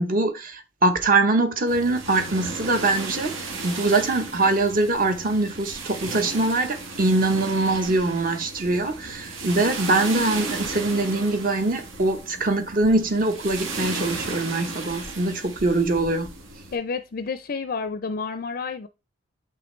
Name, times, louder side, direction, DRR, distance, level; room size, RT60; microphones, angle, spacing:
voice 1, 0.0-16.3, right 2 dB, 45° right, 0.9 m, -23 dB
sound 1, 1.7-16.8, right 3 dB, 80° right, 1.8 m, -35 dB
voice 2, 16.7-18.9, left 5 dB, 45° left, 0.4 m, -30 dB
6.6 x 5.9 x 3.2 m
head